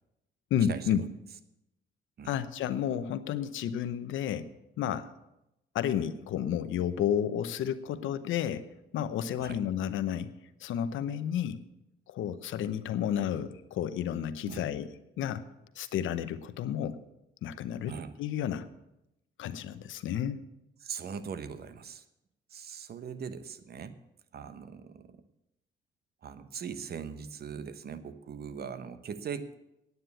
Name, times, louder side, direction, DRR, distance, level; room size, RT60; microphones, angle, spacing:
voice 1, 0.5-1.0 2.2-4.5 4.8-5.1 5.7-8.7 8.9-10.3 10.6-11.6 12.1-14.9 15.2-15.4 15.8-17.0 17.4-18.7 19.4-20.4, left 9 dB, 80° left, 12 dB, 0.8 m, -31 dB
voice 2, 20.8-22.0 22.5-24.0 24.3-25.2 26.2-29.5, right 6 dB, 55° right, 12 dB, 1.0 m, -40 dB
9.6 x 9.2 x 8.2 m, 0.88 s
cardioid pair, 90°, 20 cm